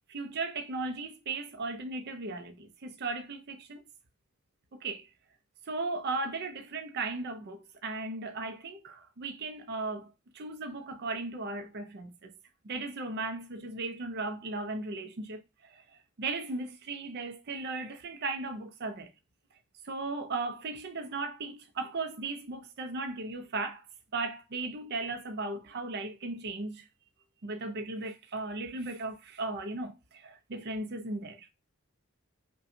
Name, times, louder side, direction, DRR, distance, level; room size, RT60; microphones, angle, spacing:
voice 1, 0.1-3.8 4.7-5.1 5.7-10.1 10.3-12.3 12.6-15.4 15.7-15.8 16.2-19.1 19.8-23.8 24.1-26.8 27.4-31.5, right 3 dB, 50° right, 0.5 m, -36 dB
5.4 x 2.3 x 2.6 m
head